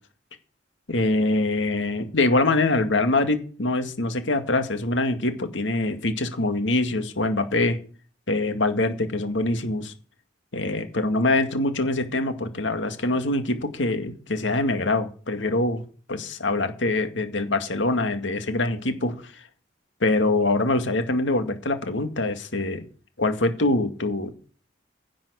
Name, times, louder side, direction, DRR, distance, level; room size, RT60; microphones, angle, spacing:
voice 1, 0.9-7.8 8.3-9.9 10.5-15.8 16.1-19.4 20.0-22.8 23.2-24.3, left 2 dB, 90° left, 7 dB, 2.1 m, -24 dB
11.0 x 7.6 x 8.2 m, 0.40 s
head